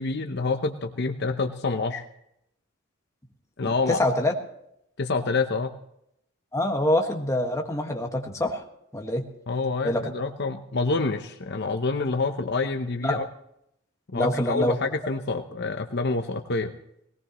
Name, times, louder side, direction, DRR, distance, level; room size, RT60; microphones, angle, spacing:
voice 1, 0.0-2.0 3.6-4.0 5.0-5.7 9.5-13.2 14.1-16.7, left 3 dB, 55° left, 6 dB, 0.8 m, -27 dB
voice 2, 3.9-4.3 6.5-8.6 8.9-9.2 9.8-10.0 13.0-13.2 14.1-14.8, left 1 dB, 15° left, 1 dB, 1.6 m, -25 dB
19.5 x 18.0 x 3.1 m, 0.77 s
head